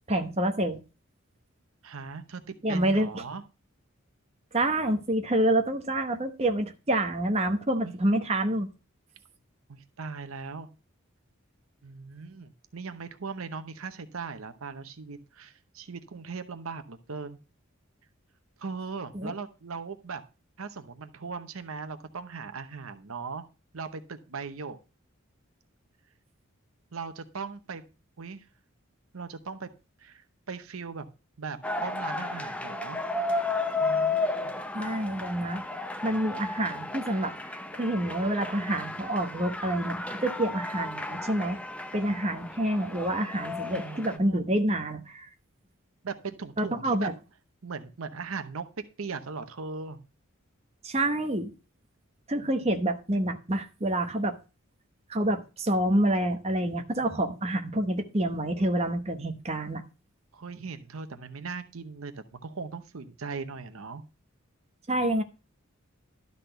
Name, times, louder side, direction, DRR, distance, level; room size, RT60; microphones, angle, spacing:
voice 1, 0.1-0.8 2.6-3.2 4.5-8.7 19.1-19.3 34.7-35.6 36.0-41.6 41.9-45.3 46.6-47.1 50.8-51.5 52.3-54.4 55.1-59.8 64.9-65.2, right 1 dB, 30° right, 0.9 m, -27 dB
voice 2, 1.8-3.4 7.8-7.9 9.7-10.7 11.8-17.4 18.6-20.2 20.6-23.5 23.7-24.8 26.9-27.8 28.2-28.5 29.1-29.7 30.0-31.1 31.4-33.0 33.8-34.5 43.7-44.4 46.0-47.1 47.6-48.7 49.0-50.0 57.0-57.4 60.3-64.0, right 4 dB, 80° right, 0.8 m, -39 dB
sound 1, 31.6-44.2, left 3 dB, 5° left, 0.5 m, -33 dB
12.0 x 4.2 x 6.6 m
head